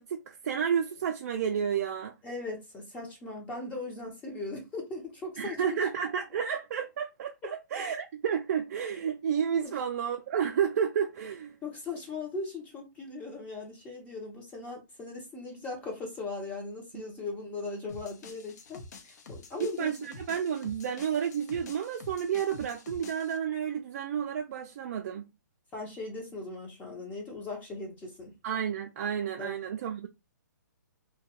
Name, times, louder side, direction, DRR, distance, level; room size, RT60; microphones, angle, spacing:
voice 1, 0.0-2.1 5.4-11.5 16.9-17.0 19.6-25.3 28.4-30.1, right 8 dB, 50° right, 0.4 m, -31 dB
voice 2, 2.2-5.8 9.6-9.8 11.6-19.9 25.7-28.3 29.4-29.6, left 3 dB, 15° left, 0.6 m, -39 dB
sound 1, 17.9-23.4, left 3 dB, 60° left, 0.7 m, -48 dB
2.2 x 2.2 x 2.8 m
hypercardioid pair, 145°, 10 cm